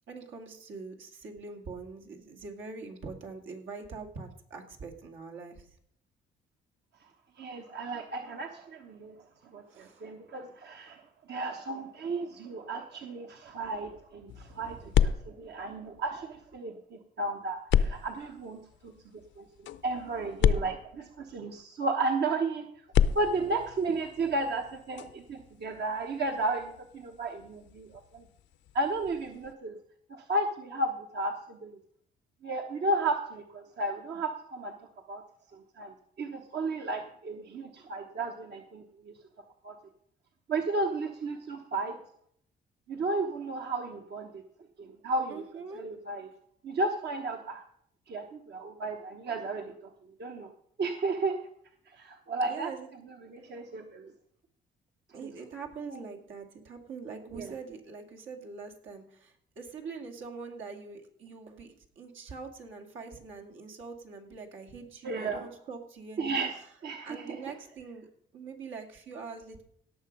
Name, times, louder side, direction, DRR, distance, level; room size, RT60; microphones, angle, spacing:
voice 1, 0.1-5.7 9.7-10.1 14.6-14.8 45.3-45.9 52.4-52.9 55.1-66.5 67.0-68.1 68.3-69.6, right 4 dB, 80° right, 2 dB, 2.5 m, -43 dB
voice 2, 7.4-9.1 9.5-11.0 11.3-18.6 18.8-18.9 19.4-19.5 19.8-22.6 23.1-28.2 28.7-29.8 30.1-31.8 32.4-34.7 35.1-35.2 35.8-39.1 39.6-39.7 40.5-42.0 42.9-44.4 44.8-45.4 45.8-46.3 46.6-47.6 48.1-49.7 50.2-50.5 50.8-51.4 51.9-52.7 53.2-54.1 55.9-56.0 57.3-57.5 65.0-65.4 66.2-66.5 66.8-67.4, right 2 dB, 60° right, 3 dB, 1.2 m, -33 dB
sound 1, 14.3-16.6 17.7-21.6 22.8-29.5, left 9 dB, 70° left, 0.6 m, -32 dB
17.5 x 6.8 x 5.4 m, 0.68 s
cardioid pair, 90°, 20 cm